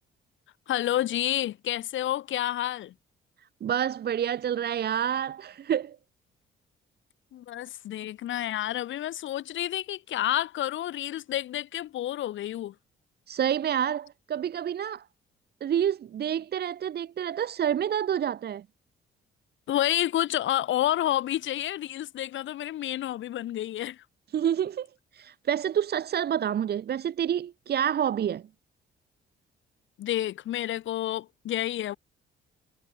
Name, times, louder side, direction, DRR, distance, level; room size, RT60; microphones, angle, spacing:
voice 1, 0.7-2.9 7.3-12.7 19.7-24.0 30.0-32.0, left 13 dB, 75° left, 1.6 m, -29 dB
voice 2, 3.6-6.0 13.3-15.0 15.6-18.6 24.3-24.9 25.1-28.4, right 9 dB, 55° right, 1.0 m, -28 dB
cardioid pair, 90°, 20 cm